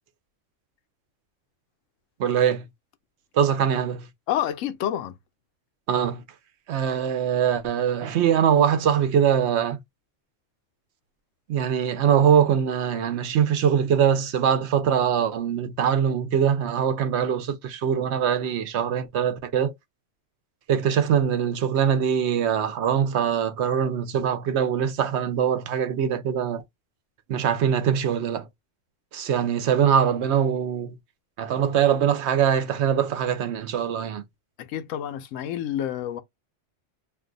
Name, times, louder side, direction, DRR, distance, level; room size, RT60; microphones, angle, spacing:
voice 1, 2.2-2.6 3.3-4.1 5.9-6.2 6.7-9.8 11.5-19.7 20.7-26.6 27.3-28.5 29.1-31.0 31.4-34.2, right 8 dB, 65° right, 0.9 m, -22 dB
voice 2, 4.3-5.2 34.6-36.2, left 11 dB, 90° left, 1.0 m, -28 dB
2.5 x 2.4 x 3.7 m
omnidirectional pair, 1.3 m